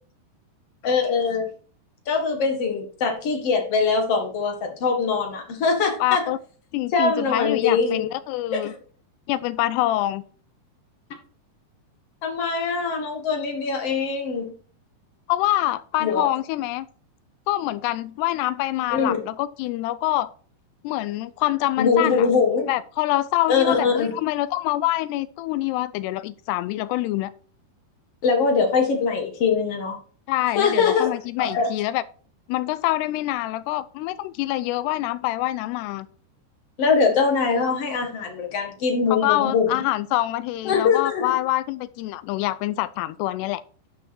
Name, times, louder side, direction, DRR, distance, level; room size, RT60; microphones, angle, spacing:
voice 1, 0.8-1.5 2.1-6.2 6.9-8.1 8.5-8.7 12.2-14.5 16.0-16.3 18.9-19.2 21.8-22.7 23.5-24.1 28.2-30.0 30.6-31.7 36.8-39.8 40.6-41.4, left 5 dB, 50° left, 4 dB, 2.1 m, -22 dB
voice 2, 6.0-6.4 6.7-8.7 9.3-10.2 15.3-16.9 17.5-20.3 20.8-22.3 22.7-27.3 30.3-32.0 32.5-36.1 39.1-43.6, left 16 dB, 90° left, 14 dB, 2.7 m, -25 dB
11.0 x 6.1 x 4.4 m, 0.41 s
omnidirectional pair, 4.7 m